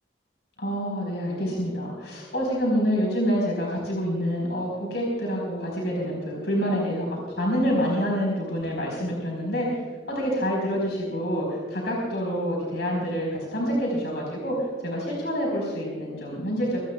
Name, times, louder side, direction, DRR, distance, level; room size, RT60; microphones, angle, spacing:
voice 1, 0.6-9.8 10.1-16.8, equal, 65° left, -2 dB, 4.4 m, -27 dB
24.0 x 18.0 x 2.3 m, 1.6 s
head